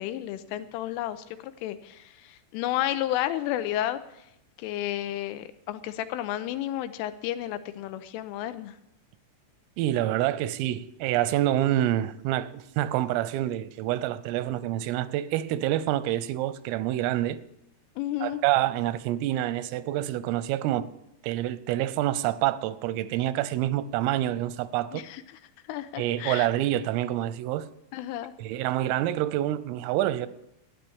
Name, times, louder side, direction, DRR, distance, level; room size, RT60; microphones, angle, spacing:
voice 1, 0.0-4.0 4.6-8.8 18.0-18.4 24.9-25.2 25.7-26.5 27.9-28.3, left 13 dB, 85° left, 3.3 m, -32 dB
voice 2, 9.8-17.4 18.2-20.9 21.2-25.0 26.0-27.7 28.4-30.3, right 13 dB, 90° right, 3.4 m, -27 dB
13.0 x 10.0 x 8.7 m
omnidirectional pair, 5.8 m